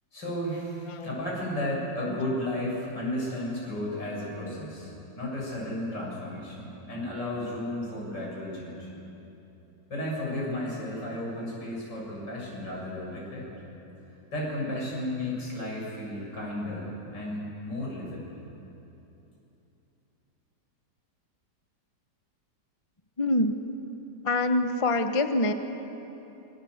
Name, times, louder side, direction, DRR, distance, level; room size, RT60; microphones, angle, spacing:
voice 1, 0.1-8.9 9.9-13.5 14.3-18.2, left 1 dB, 75° left, -4 dB, 7.8 m, -33 dB
voice 2, 23.2-23.5 24.2-25.5, left 2 dB, 25° left, 7 dB, 0.9 m, -25 dB
26.0 x 23.5 x 8.0 m, 3.0 s
omnidirectional pair, 1.9 m